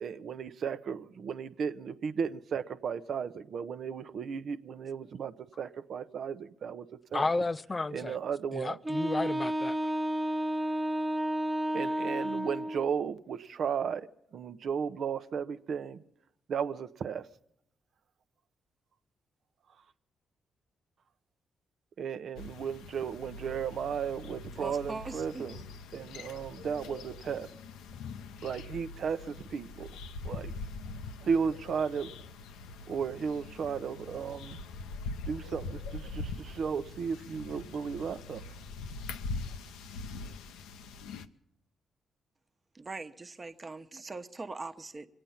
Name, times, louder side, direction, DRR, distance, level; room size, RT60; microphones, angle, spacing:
voice 1, 0.0-6.9 7.1-7.3 7.9-8.8 11.7-14.1 14.3-16.0 16.5-17.3 22.0-25.6 25.9-27.5 28.4-29.9 30.2-30.5 31.2-32.1 32.9-34.6 35.2-38.4, right 6 dB, 65° right, 0.7 m, -35 dB
voice 2, 7.1-8.2 8.5-9.8, left 3 dB, 30° left, 0.5 m, -32 dB
Wind instrument woodwind instrument, 8.8-12.9, right 1 dB, 15° right, 0.8 m, -31 dB
sound 1, 22.4-41.3, left 3 dB, 85° left, 0.6 m, -43 dB
voice 3, 24.6-25.6 42.7-45.1, right 3 dB, 35° right, 1.1 m, -41 dB
24.0 x 8.9 x 5.6 m
supercardioid pair, 50°, 0 cm